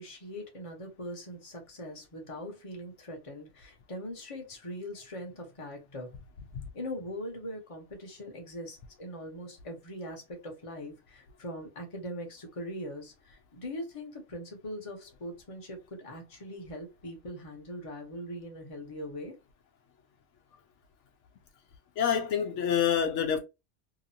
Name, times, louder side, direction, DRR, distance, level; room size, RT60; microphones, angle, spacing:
voice 1, 0.0-6.2 6.7-19.4, equal, 30° left, 0.9 m, -41 dB
voice 2, 22.0-23.4, left 8 dB, 75° left, 0.9 m, -26 dB
2.9 x 2.5 x 2.7 m
omnidirectional pair, 1.3 m